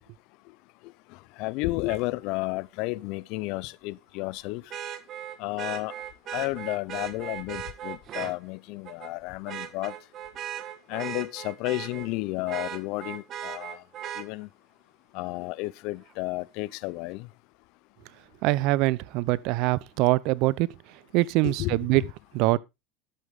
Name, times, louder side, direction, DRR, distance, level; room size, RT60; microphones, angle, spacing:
voice 1, 1.4-4.6 5.4-5.9 6.3-9.9 10.9-13.8 14.2-14.5 15.1-17.3 21.4-22.0, left 21 dB, 65° left, 0.6 m, -32 dB
Vehicle horn car horn honking, 1.9-2.0 4.7-8.3 8.8-9.1 9.5-12.1 12.5-14.2 16.1-16.2, right 10 dB, 45° right, 1.6 m, -37 dB
voice 2, 18.4-20.7 21.1-22.0 22.3-22.6, right 19 dB, 65° right, 0.7 m, -23 dB
11.5 x 8.2 x 3.6 m
supercardioid pair, 115°, 0 cm